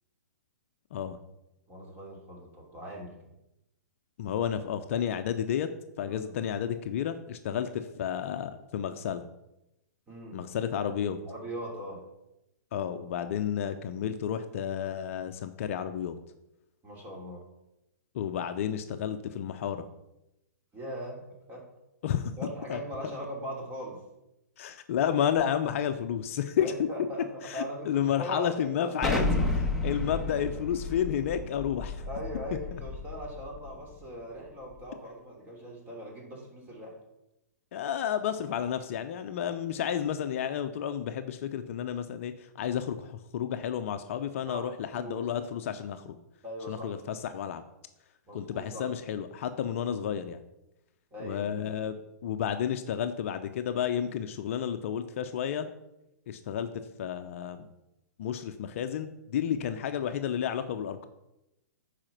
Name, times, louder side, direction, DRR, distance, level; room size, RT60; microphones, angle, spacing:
voice 1, 1.7-3.1 6.0-6.3 10.1-10.4 11.2-12.0 16.8-17.4 20.7-21.6 22.4-24.0 26.6-28.9 32.1-37.0 44.5-45.3 46.4-46.9 48.3-48.9 51.1-51.7, equal, 20° right, -1 dB, 2.9 m, -40 dB
voice 2, 4.2-5.7 6.0-9.2 10.3-11.2 12.7-16.2 18.1-19.8 22.0-22.3 22.7-22.8 24.6-26.7 27.4-29.2 29.5-32.0 32.7-32.8 37.7-46.2 46.7-47.6 48.3-50.4 51.2-55.7 56.3-57.7 58.2-61.1, left 9 dB, 50° left, 9 dB, 0.6 m, -31 dB
Explosion, 29.0-33.7, left 2 dB, 5° right, 1.3 m, -31 dB
8.8 x 5.0 x 5.8 m, 0.89 s
hypercardioid pair, 125°, 9 cm